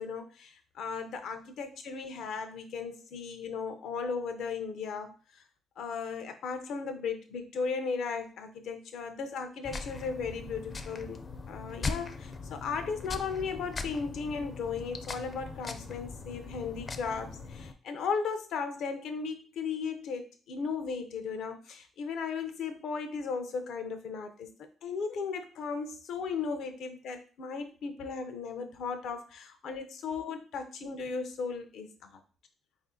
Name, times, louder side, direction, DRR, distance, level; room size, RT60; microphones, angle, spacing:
voice 1, 0.0-5.4 5.8-11.2 11.5-24.5 24.8-32.2, left 5 dB, 75° left, 7 dB, 0.7 m, -36 dB
sound 1, 9.6-17.7, left 4 dB, 40° left, 0.5 m, -40 dB
4.1 x 2.7 x 3.7 m, 0.38 s
cardioid pair, 90°, 0 cm